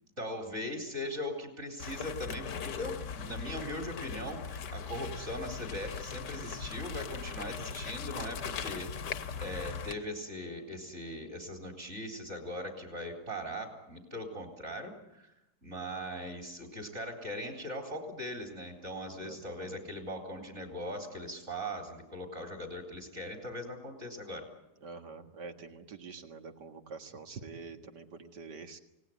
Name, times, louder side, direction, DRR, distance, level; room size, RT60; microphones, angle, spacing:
voice 1, 0.2-15.3 15.6-24.5, equal, 40° right, 3 dB, 4.3 m, -40 dB
sound 1, 1.8-9.9, left 6 dB, 70° left, 1.7 m, -39 dB
voice 2, 19.1-19.8 24.8-28.8, right 4 dB, 65° right, 6 dB, 2.4 m, -46 dB
28.5 x 18.5 x 9.3 m, 0.91 s
omnidirectional pair, 2.0 m